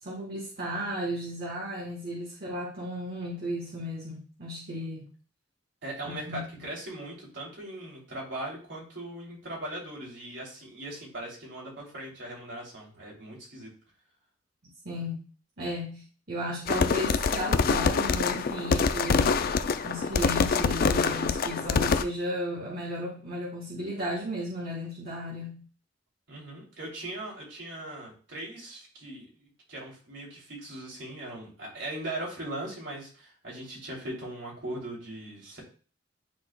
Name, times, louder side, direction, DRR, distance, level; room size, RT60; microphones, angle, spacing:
voice 1, 0.0-5.1 6.0-6.4 14.8-15.2 15.6-19.5 19.8-25.6, equal, 55° right, -4 dB, 1.3 m, -34 dB
voice 2, 5.8-13.7 26.3-35.6, right 1 dB, 70° right, -3 dB, 2.9 m, -39 dB
sound 1, 16.7-22.0, left 5 dB, 50° left, 0.4 m, -25 dB
10.5 x 4.0 x 2.2 m, 0.39 s
head